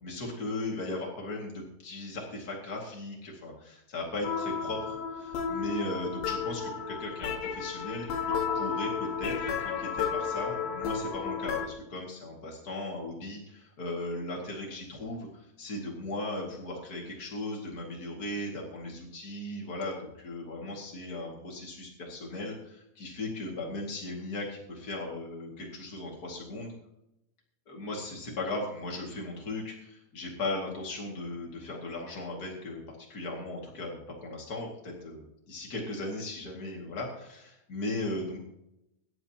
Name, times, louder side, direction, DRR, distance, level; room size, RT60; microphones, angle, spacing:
voice 1, 0.0-8.1 8.5-26.7 27.6-38.4, left 2 dB, 45° left, -2 dB, 1.2 m, -37 dB
sound 1, 4.2-11.7, left 6 dB, 75° left, 3.6 m, -32 dB
23.5 x 11.0 x 3.0 m, 0.84 s
omnidirectional pair, 5.5 m